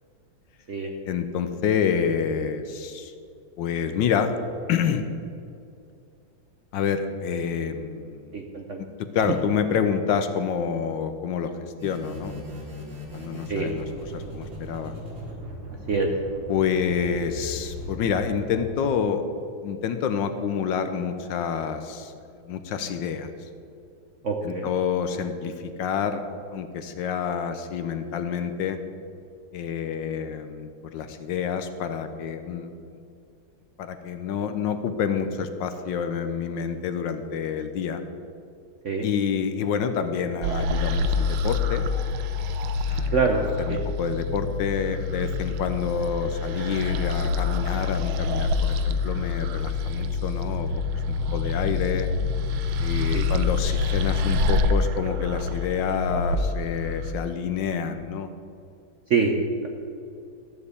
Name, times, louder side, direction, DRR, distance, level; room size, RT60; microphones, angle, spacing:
voice 1, 1.1-3.1 3.6-4.4 4.7-5.1 6.7-8.3 9.1-12.3 13.1-14.9 16.5-19.2 19.6-22.1 22.4-23.3 24.4-26.2 26.5-28.8 29.5-32.9 33.8-38.0 39.0-41.9 42.9-43.2 43.6-50.7 51.3-52.1 52.8-58.3, left 7 dB, 70° left, 9 dB, 1.3 m, -28 dB
voice 2, 8.3-8.8 13.5-13.7 15.9-16.1 24.2-24.7 38.8-39.1 43.1-43.4 43.7-43.8 53.1-53.3 59.1-59.3, right 5 dB, 55° right, 2 dB, 0.9 m, -25 dB
sound 1, 11.8-18.6, left 1 dB, 40° right, 2.7 m, -38 dB
sound 2, 40.4-57.1, left 3 dB, 85° right, 1.6 m, -26 dB
13.5 x 5.4 x 8.1 m, 2.4 s
omnidirectional pair, 2.2 m